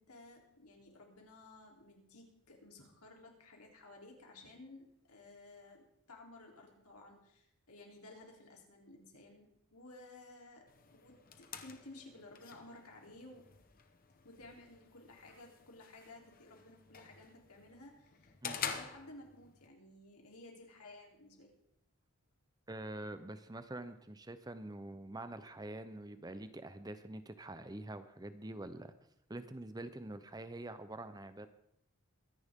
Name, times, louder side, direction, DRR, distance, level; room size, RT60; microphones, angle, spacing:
voice 1, 0.0-10.6 10.9-13.5 14.2-21.5, left 2 dB, 85° left, 1 dB, 3.4 m, -55 dB
sound 1, 10.7-19.7, left 7 dB, 40° left, 1.0 m, -48 dB
voice 2, 22.7-28.9 29.3-31.5, right 1 dB, 15° right, 11 dB, 0.6 m, -46 dB
23.0 x 10.5 x 3.6 m, 0.76 s
head